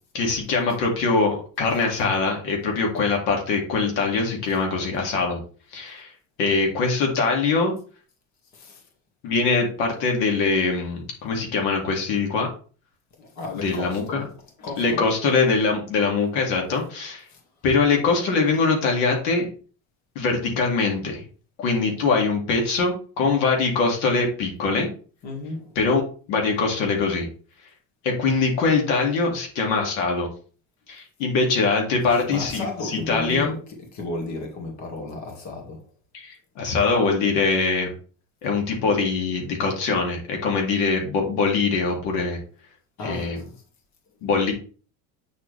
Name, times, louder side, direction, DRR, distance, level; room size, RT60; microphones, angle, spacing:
voice 1, 0.1-5.4 5.7-6.1 6.4-7.7 9.2-12.5 13.5-14.2 14.8-17.2 17.6-19.5 20.2-21.2 21.6-24.9 25.8-26.0 26.3-27.3 28.0-30.3 30.9-33.6 36.1-37.9 38.4-42.4 43.0-43.4 44.2-44.5, left 4 dB, 80° left, 2.3 m, -23 dB
voice 2, 8.5-8.8 13.2-15.2 15.5-15.8 17.3-17.4 25.2-25.8 32.0-35.9 43.0-43.5, left 2 dB, 50° left, 2.1 m, -34 dB
8.7 x 4.2 x 3.3 m
supercardioid pair, 115°, 36 cm